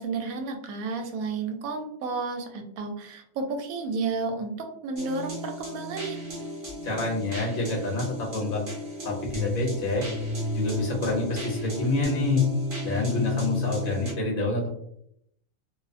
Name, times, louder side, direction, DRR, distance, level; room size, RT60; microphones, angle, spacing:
voice 1, 0.0-6.2, right 4 dB, 75° right, 4 dB, 1.0 m, -32 dB
sound 1, 5.0-14.1, left 2 dB, 50° right, 0.7 m, -32 dB
voice 2, 6.8-8.6 9.0-10.0 10.5-12.4 12.8-14.7, left 2 dB, 45° left, -1 dB, 0.9 m, -27 dB
2.5 x 2.0 x 2.5 m, 0.71 s
omnidirectional pair, 1.5 m